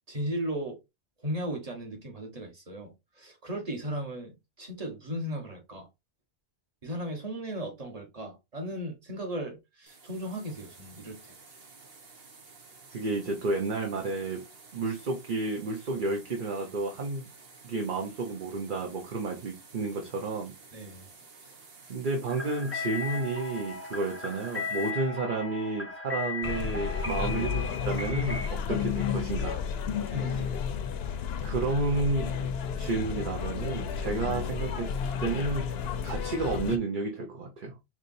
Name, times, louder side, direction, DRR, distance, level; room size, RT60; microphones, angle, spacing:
voice 1, 0.1-0.8 1.2-5.9 6.8-11.3 20.7-21.1 30.1-30.6, equal, 35° right, 1.5 m, -36 dB
sound 1, 9.9-24.9, right 4 dB, 70° right, 1.3 m, -53 dB
voice 2, 12.9-14.4 14.7-17.3 17.6-20.5 21.9-29.6 31.4-32.4 32.8-35.8 36.0-37.7, right 3 dB, 55° right, 1.0 m, -31 dB
sound 2, 22.3-28.5, left 4 dB, 15° left, 0.7 m, -36 dB
sound 3, 26.4-36.8, left 7 dB, 80° left, 0.8 m, -32 dB
4.9 x 3.0 x 2.6 m
omnidirectional pair, 1.0 m